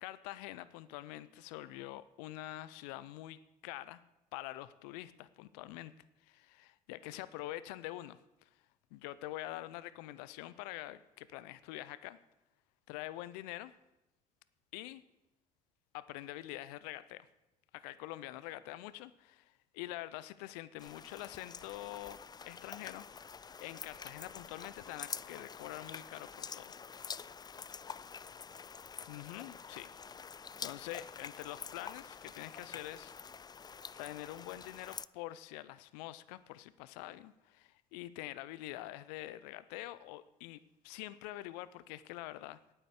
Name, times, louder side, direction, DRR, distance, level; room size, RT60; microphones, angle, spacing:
voice 1, 0.0-4.0 4.3-5.9 6.2-8.5 8.9-12.2 12.9-13.7 14.7-15.0 15.9-17.3 17.7-23.1 23.4-26.7 27.7-27.8 29.1-29.9 30.6-33.1 34.0-42.6, left 15 dB, 75° left, 16 dB, 0.6 m, -45 dB
sound 1, 20.8-35.1, left 6 dB, 20° left, 0.4 m, -47 dB
9.0 x 8.9 x 8.2 m, 0.92 s
hypercardioid pair, 60°, 20 cm